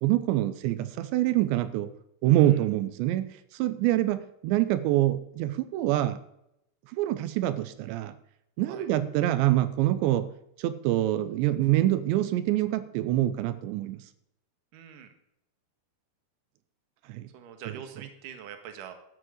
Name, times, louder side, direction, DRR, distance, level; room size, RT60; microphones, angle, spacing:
voice 1, 0.0-1.9 2.2-3.3 3.6-6.2 6.9-8.1 8.6-10.3 10.6-14.0 17.1-17.3 17.7-17.8, right 14 dB, 90° right, 12 dB, 3.1 m, -25 dB
voice 2, 2.3-2.6 8.7-8.9 14.7-15.1 17.3-18.9, right 8 dB, 60° right, 7 dB, 2.7 m, -44 dB
12.5 x 7.4 x 7.6 m, 0.78 s
omnidirectional pair, 5.0 m